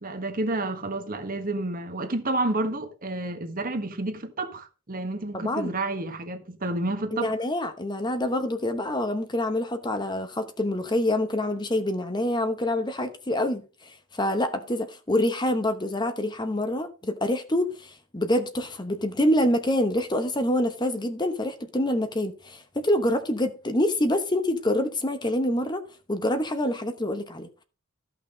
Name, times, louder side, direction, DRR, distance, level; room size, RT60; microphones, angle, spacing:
voice 1, 0.0-7.3, right 2 dB, 45° right, 1.4 m, -30 dB
voice 2, 5.3-5.7 7.1-13.6 14.1-25.8 26.1-27.6, left 1 dB, 20° left, 1.0 m, -26 dB
13.5 x 5.9 x 5.1 m
head